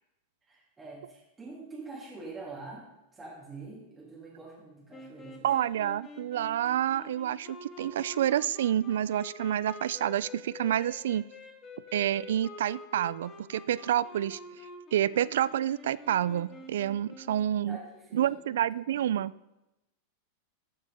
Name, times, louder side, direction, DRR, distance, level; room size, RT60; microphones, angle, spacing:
voice 1, 0.4-5.5 17.6-18.6 18.9-19.1, right 3 dB, 15° right, -6 dB, 2.7 m, -45 dB
sound 1, 4.9-17.5, left 3 dB, 25° left, 1.9 m, -47 dB
voice 2, 5.4-11.2 11.9-14.4 14.9-17.8 18.1-19.3, right 11 dB, 80° right, 20 dB, 0.3 m, -28 dB
13.5 x 6.6 x 3.6 m, 0.95 s
supercardioid pair, 130°, 0 cm